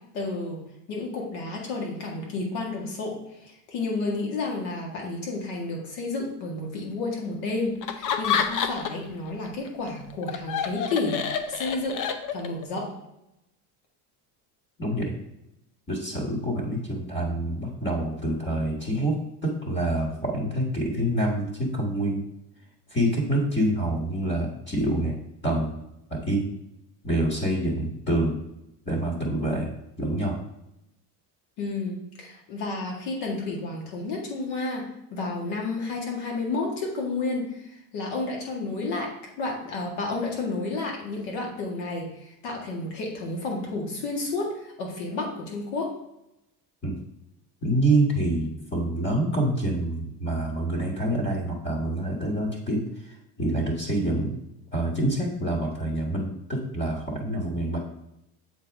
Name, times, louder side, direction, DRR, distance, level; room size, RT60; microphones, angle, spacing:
voice 1, 0.1-0.6 0.9-3.2 3.7-12.0 12.3-12.9 31.6-45.9, left 3 dB, 85° left, -1 dB, 2.0 m, -31 dB
Laughter, 7.8-9.1 9.5-12.7, left 7 dB, 45° left, 0.7 m, -28 dB
voice 2, 14.8-15.1 15.9-22.2 22.9-25.2 25.4-25.8 26.1-26.5 27.0-28.4 28.8-29.7 30.0-30.4 46.8-47.0 47.6-54.4 54.7-57.8, right 1 dB, 25° left, 0 dB, 1.5 m, -26 dB
7.6 x 4.1 x 3.5 m, 0.85 s
cardioid pair, 110°, 45 cm